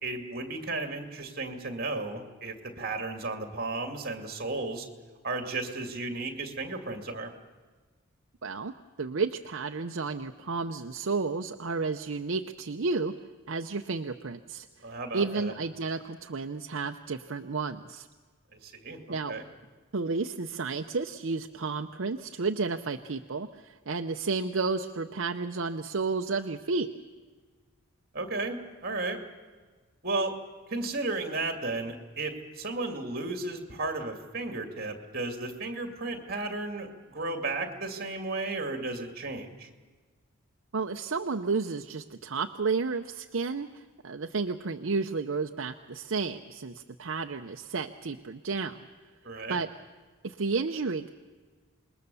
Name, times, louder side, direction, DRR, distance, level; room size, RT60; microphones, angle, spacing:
voice 1, 0.0-4.9 5.2-7.3 14.8-15.5 18.5-19.4 28.1-29.2 30.0-30.3 30.7-39.7 49.2-49.6, right 2 dB, 45° right, 5 dB, 2.5 m, -34 dB
voice 2, 8.4-8.7 9.0-13.1 13.5-14.9 15.1-18.1 19.1-19.3 19.9-26.9 40.7-48.8 49.5-49.7 50.2-51.1, right 4 dB, 65° right, 5 dB, 0.7 m, -32 dB
27.0 x 21.0 x 7.0 m, 1.4 s
head